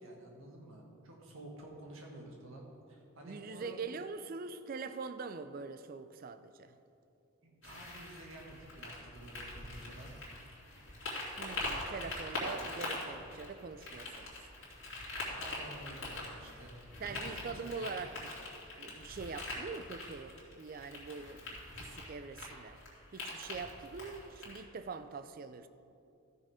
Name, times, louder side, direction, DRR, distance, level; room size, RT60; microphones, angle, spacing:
voice 1, 0.0-3.8 7.4-10.1 15.3-16.7 17.0-18.0, right 1 dB, 65° right, -1 dB, 1.7 m, -51 dB
voice 2, 3.2-6.8 11.4-14.5 17.0-18.3 18.8-22.8 23.1-25.7, right 4 dB, 40° right, 11 dB, 0.4 m, -43 dB
sound 1, 7.6-24.6, left 2 dB, 60° left, 2.5 m, -43 dB
13.0 x 6.3 x 4.9 m, 2.6 s
head